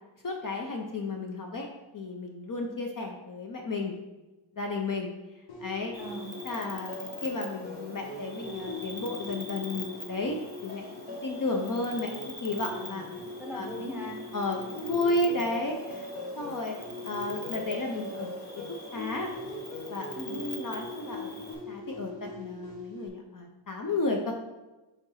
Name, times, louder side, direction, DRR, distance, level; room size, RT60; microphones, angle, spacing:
voice 1, 0.2-1.7 1.9-4.0 4.6-5.1 5.6-6.0 6.4-13.1 13.5-13.8 14.3-16.1 16.4-16.8 17.0-18.6 18.9-19.3 19.9-24.3, left 2 dB, 45° left, 2 dB, 0.6 m, -33 dB
sound 1, 5.5-23.1, left 1 dB, 75° left, 1.7 m, -41 dB
Cricket, 5.9-21.5, left 1 dB, 20° left, 1.0 m, -44 dB
voice 2, 6.0-6.3 12.7-14.2 20.1-20.4, equal, 5° right, -1 dB, 0.8 m, -40 dB
5.1 x 3.8 x 5.6 m, 1.1 s
wide cardioid pair, 175°, 48 cm